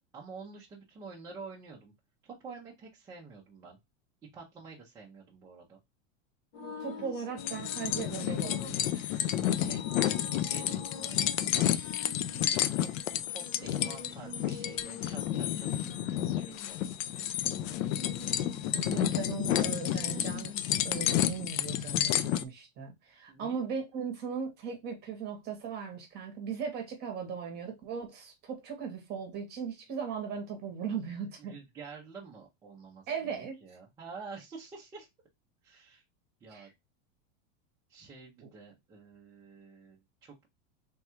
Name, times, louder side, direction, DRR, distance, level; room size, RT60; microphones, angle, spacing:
voice 1, 0.0-1.9 2.2-3.8 4.3-5.8 9.5-11.7 12.3-18.1 23.3-23.6 31.4-35.1 35.6-36.0 36.4-36.7 37.9-40.5, right 4 dB, 10° right, 0.4 m, -49 dB
sound 1, 6.5-21.0, left 4 dB, 45° left, 1.0 m, -46 dB
voice 2, 6.8-9.2 18.7-20.5 20.8-31.5 33.1-33.5 36.5-36.7 38.4-38.5, right 6 dB, 25° right, 0.8 m, -38 dB
sound 2, 7.4-22.4, left 11 dB, 85° left, 0.5 m, -31 dB
3.5 x 2.3 x 4.2 m
supercardioid pair, 165°, 38 cm